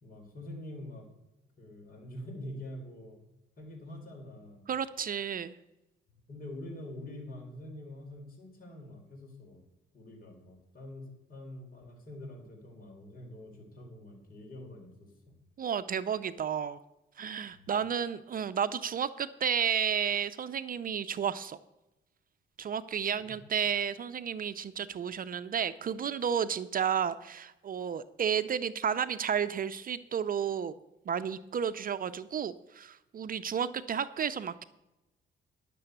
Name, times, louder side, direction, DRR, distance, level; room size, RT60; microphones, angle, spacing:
voice 1, 0.0-1.1 1.6-3.2 3.6-4.7 6.1-9.6 9.9-15.3 17.5-17.7 23.2-23.3, left 1 dB, 45° left, 2 dB, 4.2 m, -45 dB
voice 2, 4.7-5.5 15.6-16.8 17.2-21.6 22.6-30.7 31.1-34.6, right 8 dB, 45° right, 12 dB, 0.6 m, -32 dB
11.0 x 6.8 x 7.9 m, 0.95 s
cardioid pair, 90°, 20 cm